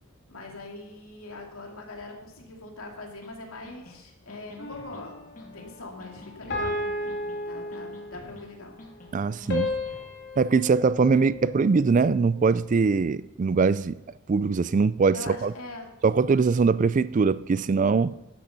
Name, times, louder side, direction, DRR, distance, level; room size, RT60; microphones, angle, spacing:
voice 1, 0.3-8.8 15.1-15.9, left 2 dB, 85° left, 2.7 m, -42 dB
sound 1, 3.2-3.3 3.6-4.0 4.3-5.0 5.4-5.7 6.0-6.8 7.1-7.5 7.7-8.5 8.8-9.1 9.4-10.1, left 3 dB, 40° left, 2.1 m, -48 dB
sound 2, 4.6-5.3 6.5-8.3 9.5-11.9, left 2 dB, 55° left, 2.5 m, -33 dB
voice 2, 9.1-9.7 10.4-14.0 14.3-15.5 16.0-18.1, right 4 dB, 35° right, 0.3 m, -22 dB
12.5 x 10.5 x 5.4 m
head